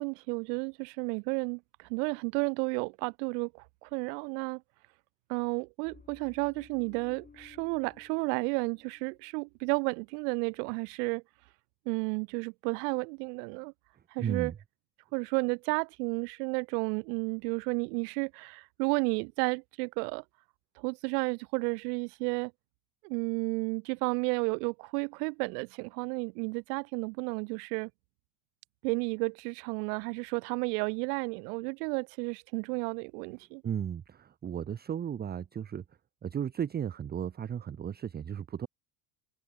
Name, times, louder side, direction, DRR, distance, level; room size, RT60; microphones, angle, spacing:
voice 1, 0.0-1.6 1.9-4.6 5.3-11.2 11.9-13.7 14.1-14.5 15.1-20.2 20.8-22.5 23.0-27.9 28.8-33.6, right 34 dB, 85° right, 2.3 m, -32 dB
sound 1, 5.9-9.3 9.6-9.9, left 5 dB, 20° left, 7.1 m, -57 dB
voice 2, 14.2-14.6 33.6-35.8 36.2-38.7, right 8 dB, 20° right, 0.7 m, -35 dB
cardioid pair, 135°, 46 cm